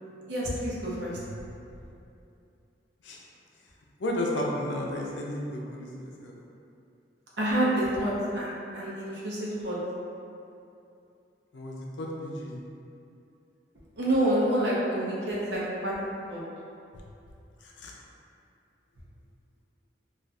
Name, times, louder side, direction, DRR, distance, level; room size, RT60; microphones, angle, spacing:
voice 1, 0.3-1.2 7.4-9.8 14.0-15.9 16.3-16.4, right 1 dB, 70° right, -6 dB, 0.7 m, -28 dB
voice 2, 4.0-6.3 11.5-12.6 17.6-17.9, left 1 dB, 85° left, -2 dB, 0.5 m, -33 dB
4.0 x 2.4 x 2.3 m, 2.7 s
head